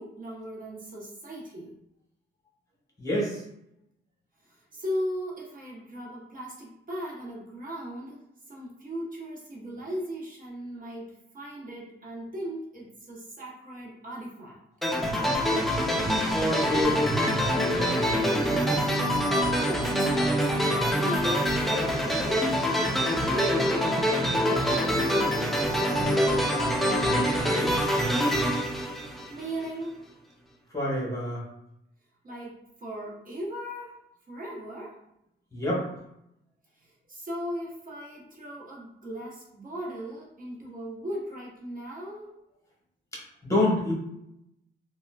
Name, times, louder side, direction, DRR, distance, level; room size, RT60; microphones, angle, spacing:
voice 1, 0.0-1.7 4.5-14.6 19.4-21.6 21.9-22.6 23.0-25.0 29.0-30.0 32.2-34.0 34.3-35.0 36.8-42.3, equal, 45° right, -4 dB, 1.0 m, -37 dB
voice 2, 3.0-3.4 16.3-18.9 27.0-27.8 30.7-31.4 35.5-35.9 43.1-43.9, left 1 dB, 15° left, -5 dB, 1.1 m, -29 dB
sound 1, 14.8-29.7, equal, ahead, 0.3 m, -25 dB
3.6 x 2.2 x 2.3 m, 0.81 s
cardioid pair, 110°, 20 cm